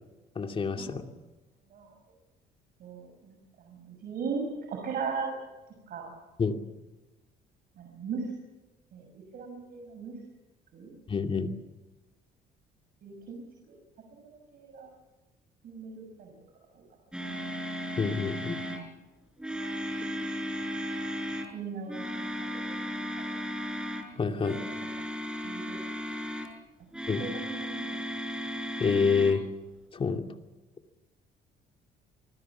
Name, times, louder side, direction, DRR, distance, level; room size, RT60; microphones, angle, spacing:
voice 1, 0.4-1.0 6.4-6.6 11.1-11.6 18.0-18.6 24.2-24.6 27.1-27.2 28.8-29.4 29.9-30.2, left 5 dB, 30° left, 4 dB, 2.6 m, -27 dB
voice 2, 2.8-3.3 3.6-5.3 5.9-6.1 7.8-8.3 8.9-10.1 10.7-10.9 13.0-13.8 14.2-14.9 15.6-16.3 17.3-17.5 21.5-22.8 23.2-23.3 25.0-25.1 25.4-25.8 27.2-28.0, right 5 dB, 60° right, 3 dB, 6.4 m, -38 dB
sound 1, 17.1-18.9 19.4-21.5 21.9-24.1 24.4-26.5 26.9-29.3, equal, 5° right, 5.5 m, -35 dB
27.0 x 20.5 x 7.4 m, 1.1 s
cardioid pair, 110°, 17 cm